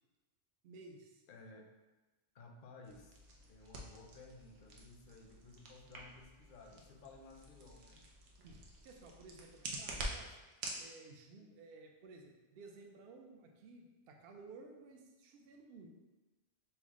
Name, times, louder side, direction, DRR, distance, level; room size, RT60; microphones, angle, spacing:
voice 1, 0.6-1.2 6.7-7.0 8.4-8.6 8.8-10.4 10.8-15.9, right 3 dB, 65° right, 2 dB, 0.7 m, -56 dB
voice 2, 1.3-1.6 2.3-3.2 3.5-8.1, left 3 dB, 55° left, 3 dB, 0.7 m, -56 dB
sound 1, 2.8-10.8, right 2 dB, 85° right, 1.0 m, -48 dB
5.6 x 2.1 x 3.5 m, 1.2 s
omnidirectional pair, 1.2 m